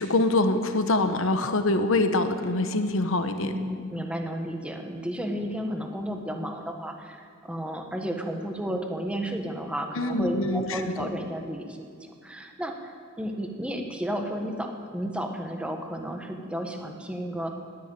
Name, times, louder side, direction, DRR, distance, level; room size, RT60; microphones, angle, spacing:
voice 1, 0.0-3.5 9.9-11.1, left 2 dB, 65° left, 8 dB, 1.0 m, -24 dB
voice 2, 3.4-17.5, equal, 5° right, 3 dB, 1.3 m, -33 dB
11.5 x 11.0 x 9.0 m, 2.2 s
head